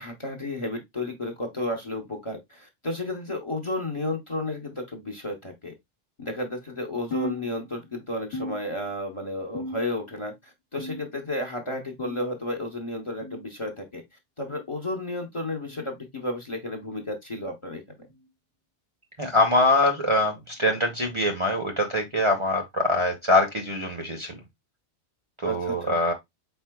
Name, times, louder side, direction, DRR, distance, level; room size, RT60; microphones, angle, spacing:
voice 1, 0.0-5.7 6.2-14.0 14.4-17.8 25.4-26.0, left 2 dB, 30° left, 0.8 m, -32 dB
sound 1, 7.1-8.0 8.3-9.1 9.5-10.2 10.8-11.4 12.0-12.4 13.2-13.4 14.4-14.6 15.6-15.9 16.9-17.1 18.1-18.3 19.3-19.5 20.5-20.6 21.8-21.9, equal, 60° left, 1.3 m, -37 dB
voice 2, 19.2-24.3 25.4-26.1, left 1 dB, 30° right, 0.7 m, -23 dB
4.5 x 4.3 x 2.2 m
omnidirectional pair, 1.2 m